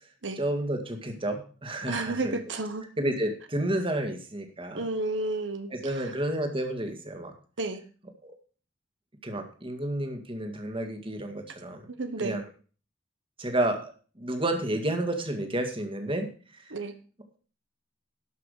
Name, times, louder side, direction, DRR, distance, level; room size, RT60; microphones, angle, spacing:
voice 1, 0.4-2.4 3.0-4.8 5.7-7.3 8.2-8.3 9.2-11.9 12.2-12.4 13.4-16.3 16.5-16.7, right 1 dB, 30° right, 6 dB, 1.9 m, -31 dB
voice 2, 1.9-2.9 4.8-6.1 7.6-7.8 11.9-12.4 16.7-16.9, right 2 dB, 85° right, 8 dB, 1.2 m, -32 dB
12.0 x 5.9 x 6.5 m, 0.39 s
head